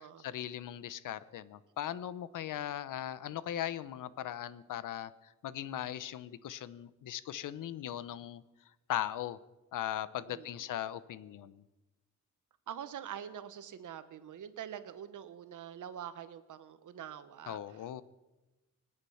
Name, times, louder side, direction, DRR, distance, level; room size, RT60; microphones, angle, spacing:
voice 1, 0.2-8.4 8.9-9.4 9.7-11.6 17.5-18.0, left 11 dB, 90° left, 16 dB, 0.8 m, -39 dB
voice 2, 10.3-10.7 12.7-17.8, right 9 dB, 75° right, 12 dB, 1.2 m, -45 dB
25.0 x 8.7 x 5.8 m, 1.1 s
wide cardioid pair, 125°, 31 cm